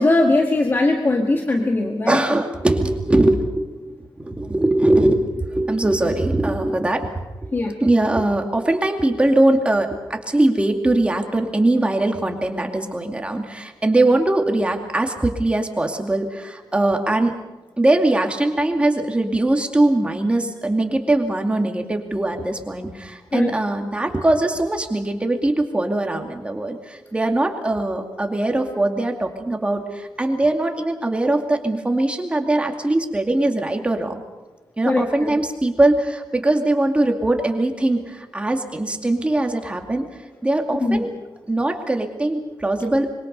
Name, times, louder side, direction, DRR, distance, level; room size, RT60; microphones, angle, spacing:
voice 1, 0.0-2.4 7.5-7.7 23.3-23.6 34.8-35.4 40.8-41.1, left 2 dB, 25° left, 2 dB, 1.7 m, -20 dB
voice 2, 2.1-7.5 7.8-17.4 17.8-34.2 34.8-40.0 40.4-41.1 41.5-43.1, right 2 dB, 15° right, 3 dB, 2.3 m, -21 dB
25.5 x 23.5 x 5.5 m, 1.1 s
wide cardioid pair, 170°, 8 cm